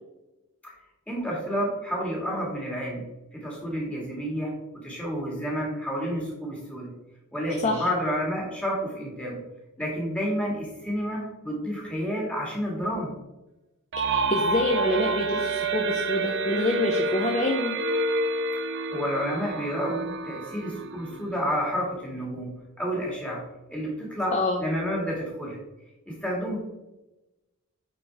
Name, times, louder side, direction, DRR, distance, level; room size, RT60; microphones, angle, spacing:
voice 1, 1.1-4.5 4.8-6.9 7.3-9.4 9.8-13.1 18.6-18.7 18.9-23.4 23.7-24.3 24.6-25.6 26.1-26.6, equal, 5° left, -3 dB, 2.0 m, -30 dB
sound 1, 13.9-21.5, right 3 dB, 55° right, 0.6 m, -29 dB
voice 2, 14.0-17.8 24.3-24.6, left 2 dB, 30° left, 1 dB, 0.8 m, -26 dB
9.0 x 4.5 x 3.5 m, 1.0 s
head